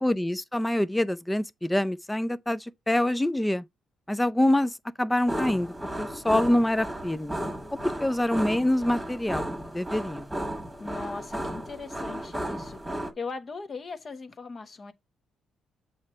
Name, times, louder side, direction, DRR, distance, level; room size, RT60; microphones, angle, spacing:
voice 1, 0.0-3.6 4.1-7.4 7.8-9.5 9.7-10.3, left 1 dB, 10° left, 0.5 m, -26 dB
sound 1, 5.3-13.1, right 1 dB, 10° right, 1.5 m, -34 dB
voice 2, 10.8-12.8 13.2-14.9, left 4 dB, 35° left, 1.1 m, -38 dB
7.8 x 3.1 x 5.5 m
cardioid pair, 110°, 0 cm